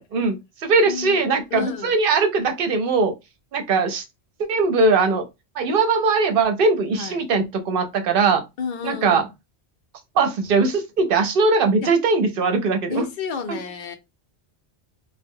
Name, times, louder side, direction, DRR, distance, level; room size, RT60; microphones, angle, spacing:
voice 1, 0.1-3.1 3.5-4.0 4.5-5.2 5.6-8.4 8.8-9.3 10.2-13.1 13.5-13.6, right 4 dB, 60° right, 0.7 m, -20 dB
voice 2, 0.8-1.2 1.5-2.0 6.9-7.2 8.6-9.2 11.8-11.9 12.9-14.0, left 5 dB, 55° left, 0.6 m, -31 dB
2.1 x 2.0 x 3.5 m
omnidirectional pair, 1.1 m